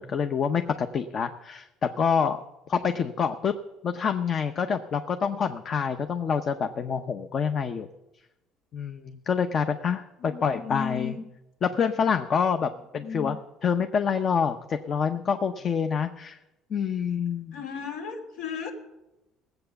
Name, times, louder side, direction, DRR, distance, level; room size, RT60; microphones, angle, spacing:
voice 1, 0.0-2.4 2.7-3.5 3.8-7.9 8.7-11.2 11.6-16.4 16.7-17.6, left 6 dB, 40° left, 8 dB, 0.7 m, -27 dB
voice 2, 10.2-11.2 13.0-13.3 17.5-18.7, left 6 dB, 85° left, 2 dB, 2.8 m, -34 dB
17.5 x 7.9 x 6.9 m, 0.99 s
cardioid pair, 120°, 0 cm